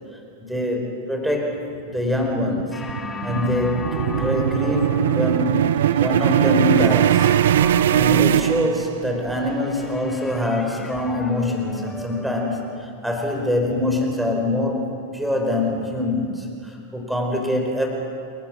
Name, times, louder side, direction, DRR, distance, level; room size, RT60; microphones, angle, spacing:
voice 1, 0.4-2.8 3.2-5.7 6.0-7.3 7.9-17.9, left 1 dB, 5° right, 1 dB, 4.6 m, -24 dB
sound 1, 2.0-9.2, right 11 dB, 60° right, 0.4 m, -20 dB
sound 2, 2.7-12.9, left 4 dB, 15° left, 1.4 m, -37 dB
28.5 x 18.5 x 6.1 m, 2.6 s
figure-of-eight pair, 90°, 0 cm